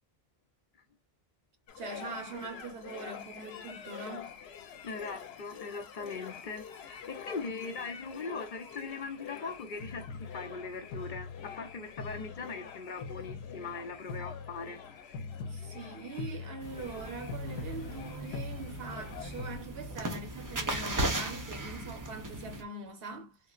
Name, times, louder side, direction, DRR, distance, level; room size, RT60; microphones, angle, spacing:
sound 1, 1.7-19.6, left 6 dB, 85° left, 0.8 m, -44 dB
voice 1, 1.8-4.4 15.4-23.5, right 3 dB, 75° right, 1.1 m, -43 dB
voice 2, 4.8-15.1, left 4 dB, 55° left, 0.7 m, -40 dB
sound 2, 16.6-22.6, right 1 dB, 30° right, 0.4 m, -37 dB
3.6 x 2.0 x 2.3 m
omnidirectional pair, 1.0 m